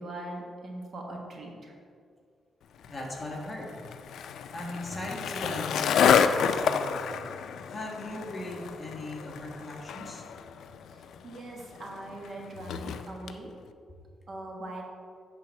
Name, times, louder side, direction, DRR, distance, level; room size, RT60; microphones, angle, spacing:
voice 1, 0.0-1.8 10.9-13.5 14.3-14.8, right 1 dB, 50° right, 0 dB, 1.3 m, -41 dB
Skateboard, 2.8-13.4, left 7 dB, 80° left, 0.4 m, -30 dB
voice 2, 2.9-3.7 4.5-7.1 7.7-10.2, left 1 dB, 20° left, -2 dB, 1.4 m, -38 dB
sound 1, 4.5-11.3, left 4 dB, 5° left, 0.7 m, -55 dB
8.9 x 4.0 x 6.3 m, 2.2 s
cardioid pair, 140°, 0 cm